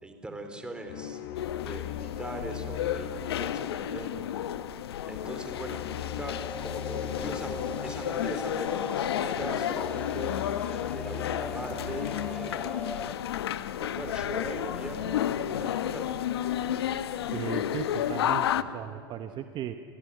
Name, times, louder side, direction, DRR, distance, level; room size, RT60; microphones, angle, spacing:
voice 1, 0.0-1.2 1.6-4.1 5.1-10.4 10.9-12.8 13.8-16.3, right 1 dB, 5° right, 5 dB, 3.8 m, -40 dB
sound 1, 0.9-14.0, left 11 dB, 60° left, 1.5 m, -40 dB
sound 2, 1.3-18.6, left 11 dB, 80° left, 1.0 m, -32 dB
sound 3, 6.3-13.1, left 2 dB, 10° left, 0.7 m, -41 dB
voice 2, 17.3-19.8, right 10 dB, 35° right, 8 dB, 1.0 m, -36 dB
29.0 x 17.0 x 9.4 m, 2.6 s
hypercardioid pair, 110°, 13 cm